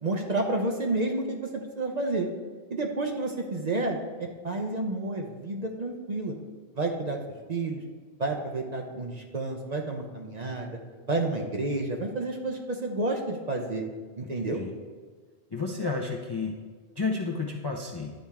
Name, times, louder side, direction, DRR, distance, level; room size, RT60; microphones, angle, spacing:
voice 1, 0.0-2.3 2.7-6.4 6.7-7.2 7.5-7.8 8.2-10.8 11.1-13.8 14.2-14.6, right 2 dB, 45° right, 2 dB, 0.7 m, -30 dB
voice 2, 15.5-16.5 17.0-18.1, left 4 dB, 35° left, 0 dB, 0.4 m, -31 dB
10.5 x 4.3 x 3.5 m, 1.5 s
omnidirectional pair, 1.1 m